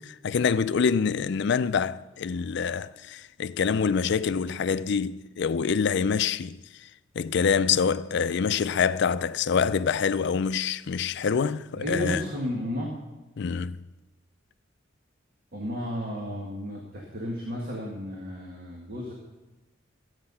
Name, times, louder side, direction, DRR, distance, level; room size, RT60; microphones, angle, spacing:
voice 1, 0.0-6.9 7.2-12.2 13.4-13.9, left 6 dB, 65° left, 0.4 m, -26 dB
voice 2, 11.7-13.0 15.5-19.1, equal, 50° right, 1.9 m, -33 dB
14.0 x 8.8 x 5.6 m
head